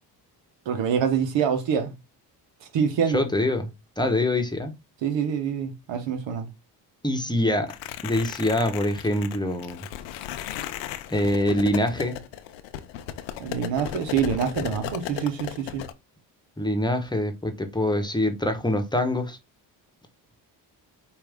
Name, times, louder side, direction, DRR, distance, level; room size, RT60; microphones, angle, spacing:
voice 1, 0.7-1.9 2.6-3.2 5.0-6.5 13.4-15.8, right 7 dB, 75° right, 1.1 m, -26 dB
voice 2, 3.1-3.7 4.0-4.7 7.0-7.7 8.0-9.9 11.1-12.2 16.6-19.4, left 1 dB, 10° left, 1.1 m, -24 dB
sound 1, 7.7-15.9, left 11 dB, 90° left, 0.6 m, -36 dB
4.8 x 2.7 x 3.5 m
supercardioid pair, 65°, 44 cm